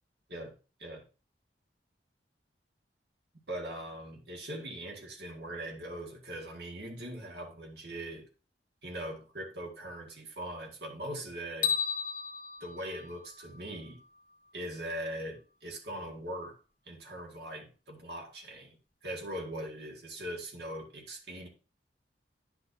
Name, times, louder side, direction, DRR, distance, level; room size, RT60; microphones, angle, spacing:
voice 1, 3.5-8.3 8.8-11.8 12.6-14.0 14.5-16.6 16.9-21.5, right 1 dB, 65° right, 1 dB, 2.0 m, -41 dB
sound 1, 11.6-13.9, left 7 dB, 50° left, 1.0 m, -34 dB
10.5 x 5.7 x 2.7 m, 0.33 s
head